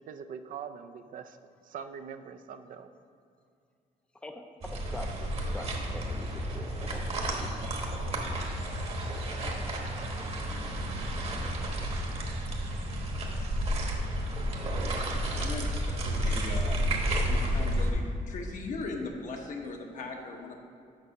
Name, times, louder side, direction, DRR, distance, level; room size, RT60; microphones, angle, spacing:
voice 1, 0.1-1.4 1.6-2.9, right 7 dB, 65° right, 8 dB, 0.4 m, -42 dB
voice 2, 4.2-7.5 15.3-15.5, left 2 dB, 5° left, 5 dB, 0.5 m, -44 dB
sound 1, 4.6-17.9, equal, 45° right, 1.1 m, -31 dB
voice 3, 15.3-15.6 16.0-16.8 17.3-20.6, left 3 dB, 60° left, 2 dB, 1.1 m, -39 dB
6.6 x 5.4 x 5.8 m, 2.4 s
cardioid pair, 145°, 15 cm